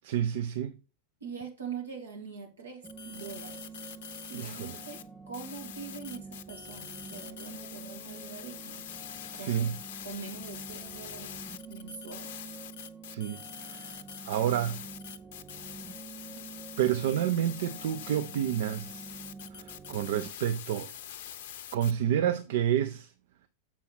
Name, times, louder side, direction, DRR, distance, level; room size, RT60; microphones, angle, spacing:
voice 1, 0.0-0.8 4.3-4.8 9.3-9.8 13.1-14.0 14.2-14.8 16.8-19.2 19.5-20.9 21.7-23.1, right 10 dB, 55° right, 0.5 m, -29 dB
voice 2, 1.2-3.7 4.3-8.9 9.3-11.3 11.7-12.3, right 6 dB, 70° right, 2.1 m, -43 dB
sound 1, 2.8-5.0 5.3-21.9, left 9 dB, 55° left, 0.6 m, -44 dB
sound 2, 2.8-20.3, right 5 dB, 10° right, 0.6 m, -47 dB
7.3 x 5.6 x 4.3 m
figure-of-eight pair, 90°, 0 cm